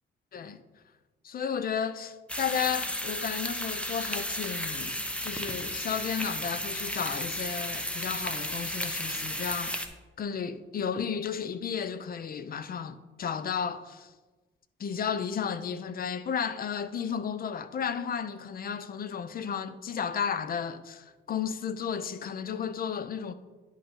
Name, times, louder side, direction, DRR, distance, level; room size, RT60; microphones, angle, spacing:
voice 1, 0.3-0.6 1.2-5.0 5.2-9.8 10.2-14.1 14.8-23.3, left 7 dB, 50° left, 0.5 m, -33 dB
sound 1, 2.3-9.9, equal, 5° left, 0.8 m, -34 dB
10.0 x 5.1 x 3.7 m
cardioid pair, 90°, 20 cm